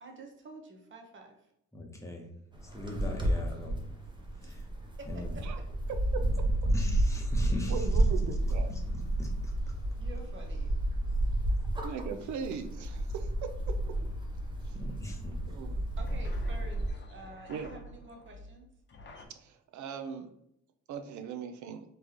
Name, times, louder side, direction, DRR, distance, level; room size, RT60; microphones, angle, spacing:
voice 1, 0.0-1.4 4.4-4.5 5.0-5.6 10.0-10.7 16.0-18.7, right 2 dB, 40° right, 3 dB, 1.1 m, -49 dB
voice 2, 1.7-2.2 2.7-3.8 4.4-4.6 5.1-5.4 6.2-6.3 6.7-7.8 8.7-9.5 14.7-15.4 15.7-15.8, left 1 dB, 10° left, 1 dB, 1.0 m, -41 dB
sound 1, 2.5-16.9, right 1 dB, 15° right, 0.9 m, -31 dB
voice 3, 5.9-6.3 7.7-8.7 11.8-13.3 14.7-14.8 15.4-15.8 17.5-17.8 19.4-20.3 20.9-21.8, right 6 dB, 70° right, 7 dB, 0.6 m, -39 dB
sound 2, 12.5-19.3, left 1 dB, 40° left, 0.8 m, -51 dB
4.3 x 3.2 x 2.9 m, 0.79 s
cardioid pair, 90°, 30 cm